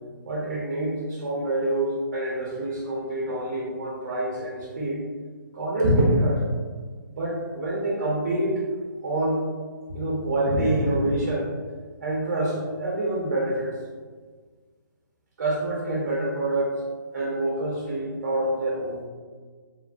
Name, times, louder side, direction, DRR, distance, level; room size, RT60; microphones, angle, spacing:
voice 1, 0.3-5.0 5.5-6.5 7.1-8.6 9.0-9.5 9.9-11.5 12.0-13.8 15.4-16.8 17.1-19.0, right 1 dB, 40° right, -4 dB, 0.5 m, -26 dB
3.0 x 2.3 x 2.4 m, 1.5 s
hypercardioid pair, 175°, 11 cm